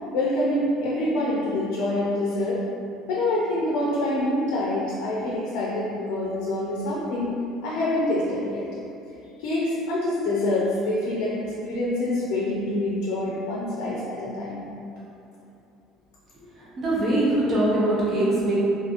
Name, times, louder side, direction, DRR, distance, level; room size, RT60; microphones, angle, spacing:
voice 1, 0.1-2.6 3.1-7.3 7.6-8.7 9.4-14.6, left 1 dB, 80° left, -5 dB, 0.4 m, -26 dB
voice 2, 16.5-18.6, right 1 dB, 30° right, -8 dB, 0.7 m, -22 dB
2.8 x 2.5 x 2.4 m, 2.7 s
cardioid pair, 145°, 0 cm